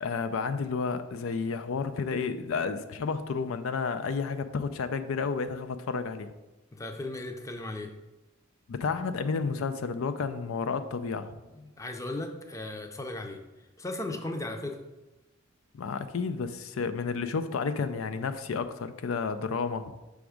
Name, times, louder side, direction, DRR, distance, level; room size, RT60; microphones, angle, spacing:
voice 1, 0.0-6.3 8.7-11.3 15.7-19.9, left 5 dB, 85° left, 10 dB, 0.4 m, -31 dB
voice 2, 6.7-7.9 11.5-14.9, left 2 dB, 15° left, 4 dB, 0.5 m, -37 dB
6.1 x 3.5 x 4.9 m, 1.1 s
head